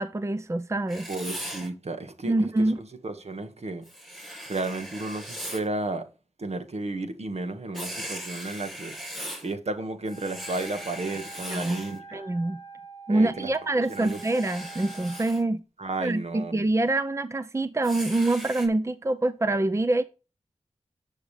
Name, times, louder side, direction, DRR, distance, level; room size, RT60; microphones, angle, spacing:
voice 1, 0.0-1.1 2.2-2.8 11.5-11.8 12.1-12.6 13.1-15.6 16.0-20.0, right 2 dB, 25° right, 0.6 m, -25 dB
Writing, 0.9-1.7 3.8-5.7 7.7-9.5 10.1-12.0 13.8-15.4 17.8-18.7, right 1 dB, ahead, 6.8 m, -39 dB
voice 2, 1.1-2.6 3.0-3.8 4.5-6.0 6.4-9.0 9.4-12.2 13.1-13.5 13.9-14.2 15.8-16.7, right 2 dB, 65° right, 1.7 m, -33 dB
Wind instrument woodwind instrument, 10.0-15.3, right 3 dB, 35° left, 1.1 m, -45 dB
10.5 x 6.5 x 5.0 m
wide cardioid pair, 75°, 12 cm